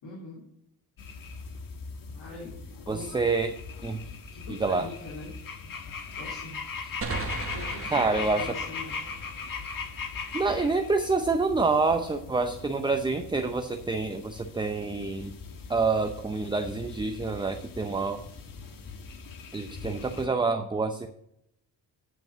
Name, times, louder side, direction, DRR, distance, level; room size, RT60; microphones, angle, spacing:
voice 1, 0.0-0.4 2.1-2.6 2.8-3.2 4.0-5.3 6.2-6.6 7.5-9.1, left 3 dB, 75° left, -6 dB, 3.3 m, -42 dB
sound 1, 1.0-20.3, left 5 dB, 55° left, 1.4 m, -40 dB
voice 2, 2.9-3.5 3.8-4.0 4.6-4.9 7.9-8.5 10.3-15.3 15.7-18.2 19.5-21.1, right 3 dB, 10° right, 6 dB, 0.6 m, -27 dB
sound 2, 7.0-10.5, right 4 dB, 35° right, 1.3 m, -38 dB
9.6 x 5.3 x 7.5 m, 0.76 s
cardioid pair, 95°, 41 cm